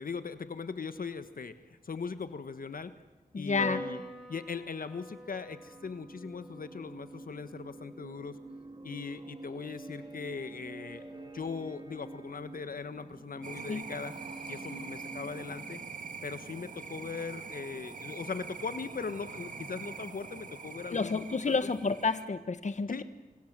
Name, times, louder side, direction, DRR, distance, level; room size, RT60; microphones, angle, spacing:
voice 1, 0.0-1.6 1.8-2.9 3.3-4.0 4.3-8.4 8.8-11.0 11.3-14.1 14.5-15.8 16.2-21.5 22.9-23.0, left 5 dB, 70° left, 11 dB, 1.4 m, -39 dB
voice 2, 3.3-3.8 13.7-13.8 20.9-23.0, left 4 dB, 50° left, 11 dB, 1.4 m, -30 dB
Piano, 3.6-10.3, equal, ahead, 5.5 m, -47 dB
sound 1, 4.8-16.2, right 2 dB, 30° right, 3.6 m, -48 dB
sound 2, 13.4-22.3, right 5 dB, 60° right, 2.3 m, -44 dB
28.5 x 26.5 x 7.6 m, 1.1 s
wide cardioid pair, 80°, 15 cm